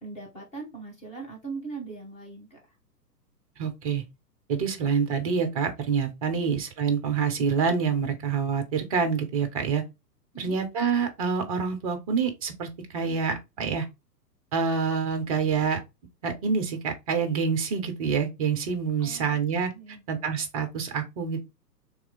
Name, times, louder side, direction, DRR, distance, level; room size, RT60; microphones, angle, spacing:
voice 1, 0.0-2.6 10.3-10.6 19.0-19.4 19.7-20.0, right 4 dB, 15° left, 1.2 m, -40 dB
voice 2, 3.6-4.0 4.5-9.8 10.4-13.9 14.5-15.8 16.2-19.7 20.1-21.4, right 6 dB, 25° right, 0.5 m, -27 dB
3.1 x 3.0 x 3.8 m
figure-of-eight pair, 110°, 49 cm